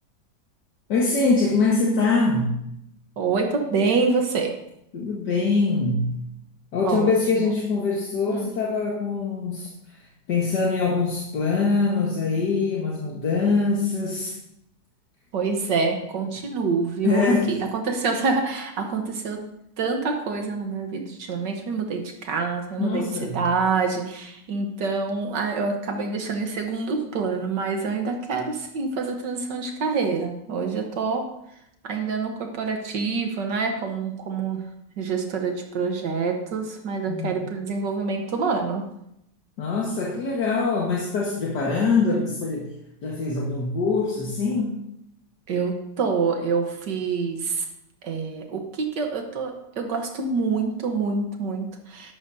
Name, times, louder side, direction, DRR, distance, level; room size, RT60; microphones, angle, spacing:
voice 1, 0.9-2.5 4.9-6.1 6.7-9.7 10.3-14.4 17.0-17.6 22.8-23.4 37.1-37.3 39.6-42.7 43.0-44.8, left 4 dB, 70° left, -3 dB, 2.1 m, -23 dB
voice 2, 3.2-4.6 6.8-7.1 8.3-8.5 15.3-19.4 19.8-31.3 31.8-34.7 35.0-38.8 41.7-41.9 45.5-47.7 48.0-52.1, right 4 dB, 75° right, 4 dB, 1.8 m, -26 dB
12.5 x 12.0 x 2.7 m, 0.79 s
omnidirectional pair, 1.9 m